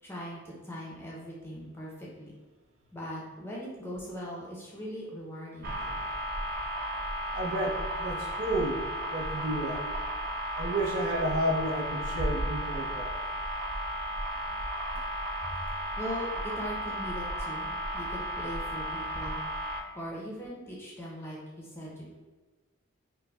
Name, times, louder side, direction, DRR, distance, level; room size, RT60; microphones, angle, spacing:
voice 1, 0.0-2.3 2.9-5.8 15.4-15.5 16.0-19.4 19.9-22.1, equal, 10° left, -4 dB, 0.5 m, -40 dB
sound 1, 5.6-19.8, equal, 45° right, 0.3 m, -34 dB
voice 2, 7.3-8.8 9.1-9.8 10.6-13.1, right 1 dB, 85° right, -2 dB, 0.7 m, -31 dB
4.6 x 2.1 x 2.2 m, 1.2 s
head